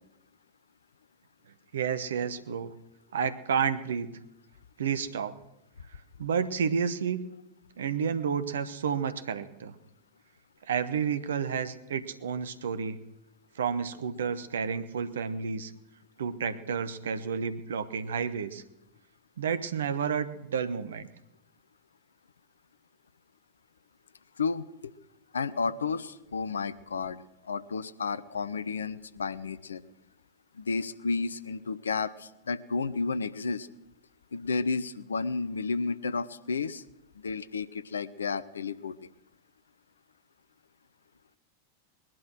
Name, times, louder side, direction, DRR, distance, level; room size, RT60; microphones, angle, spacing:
voice 1, 1.7-2.7 3.1-4.1 4.8-5.3 6.2-7.3 7.8-9.8 10.7-13.0 13.5-15.7 16.2-18.6 19.4-21.1, right 6 dB, 65° right, 12 dB, 1.1 m, -30 dB
voice 2, 24.4-24.9 25.3-29.8 30.5-33.7 34.3-36.8 37.2-39.0, left 4 dB, 70° left, 15 dB, 0.7 m, -32 dB
20.5 x 11.5 x 6.3 m, 0.91 s
figure-of-eight pair, 90°, 0 cm